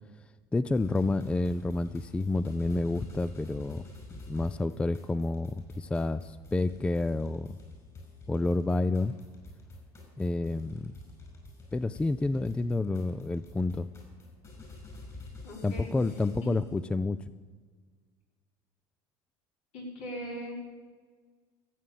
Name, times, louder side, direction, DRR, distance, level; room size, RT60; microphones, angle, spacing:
voice 1, 0.5-3.8 4.1-7.6 8.3-9.1 10.2-10.9 11.7-13.9 15.6-17.2, left 2 dB, 10° left, 15 dB, 0.3 m, -29 dB
sound 1, 0.7-16.7, left 2 dB, 30° left, 5.4 m, -49 dB
voice 2, 15.4-15.9 16.4-16.5 19.7-20.5, equal, 70° left, -3 dB, 5.1 m, -39 dB
15.0 x 7.8 x 7.4 m, 1.6 s
supercardioid pair, 110°, 11 cm